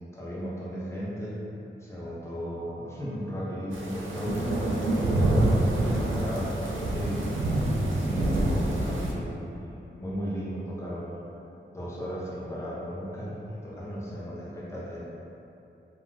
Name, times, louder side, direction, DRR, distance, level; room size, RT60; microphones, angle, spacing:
voice 1, 0.1-1.4 1.8-4.4 4.9-7.3 7.9-11.1 11.7-15.0, equal, 15° left, -7 dB, 0.7 m, -35 dB
sound 1, 3.7-9.1, right 1 dB, 85° right, 0.4 m, -26 dB
2.4 x 2.4 x 3.2 m, 2.9 s
wide cardioid pair, 65°, 20 cm